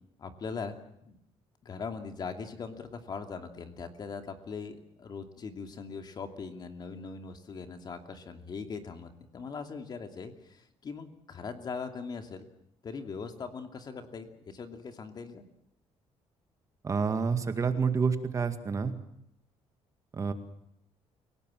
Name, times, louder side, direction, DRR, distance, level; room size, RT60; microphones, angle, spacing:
voice 1, 0.2-0.8 1.0-1.2 1.6-12.5 12.8-15.4, left 5 dB, 40° left, 6 dB, 2.7 m, -40 dB
voice 2, 16.8-19.0 20.1-20.3, right 5 dB, 30° right, 8 dB, 2.0 m, -28 dB
29.0 x 17.5 x 7.7 m, 0.76 s
cardioid pair, 130°, 11 cm